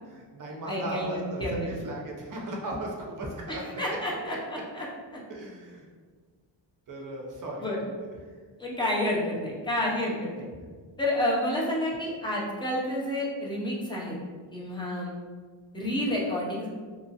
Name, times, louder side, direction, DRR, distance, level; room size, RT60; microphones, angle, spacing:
voice 1, 0.1-4.0 5.3-5.9 6.9-7.7 8.0-8.1 10.5-10.6, right 1 dB, 45° right, -1 dB, 0.5 m, -37 dB
voice 2, 0.7-1.7 3.5-4.9 5.1-5.2 7.6-7.8 8.6-10.5 11.0-14.2 14.5-15.1 15.7-16.7, left 1 dB, 10° left, -5 dB, 0.4 m, -30 dB
2.9 x 2.3 x 2.7 m, 1.5 s
wide cardioid pair, 180°, 44 cm